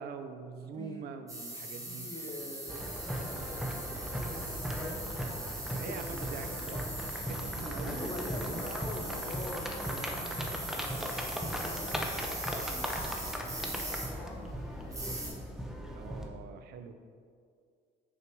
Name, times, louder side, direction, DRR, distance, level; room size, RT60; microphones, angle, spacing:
voice 1, 0.0-2.1 5.7-6.8 7.2-8.0 15.9-16.9, right 5 dB, 70° right, 8 dB, 0.6 m, -44 dB
voice 2, 0.7-1.1 1.8-5.2 5.8-7.0 7.8-11.0 11.5-15.4, left 2 dB, 25° left, 0 dB, 1.0 m, -46 dB
sound 1, 1.3-15.3, right 1 dB, 20° right, 1.6 m, -41 dB
sound 2, 2.7-16.3, equal, ahead, 0.7 m, -38 dB
6.0 x 4.7 x 4.6 m, 2.2 s
cardioid pair, 110°, 17 cm